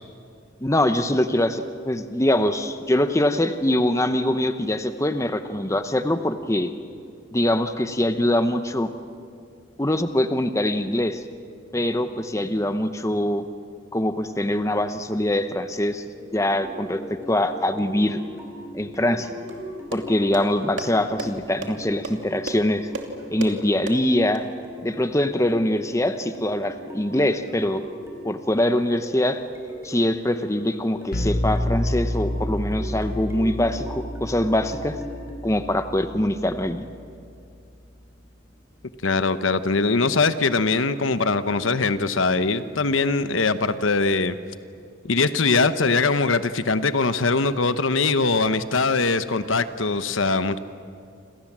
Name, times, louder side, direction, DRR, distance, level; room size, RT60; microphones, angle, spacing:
voice 1, 0.6-6.7 7.3-8.9 9.8-11.2 11.7-13.4 13.9-16.0 16.3-18.2 18.7-19.3 19.9-22.9 23.3-24.4 24.8-27.8 28.2-29.4 29.8-35.0 35.4-36.9, left 1 dB, 15° left, 9 dB, 0.9 m, -23 dB
sound 1, 16.1-23.9 24.6-28.3 28.9-35.4, equal, 15° right, 4.8 m, -40 dB
sound 2, 19.5-24.4, right 2 dB, 70° right, 2.7 m, -36 dB
sound 3, 31.1-36.9, left 1 dB, 50° left, 1.5 m, -29 dB
voice 2, 39.0-44.4 45.0-50.6, left 3 dB, 80° left, 11 dB, 1.0 m, -22 dB
28.5 x 27.0 x 7.4 m, 2.4 s
head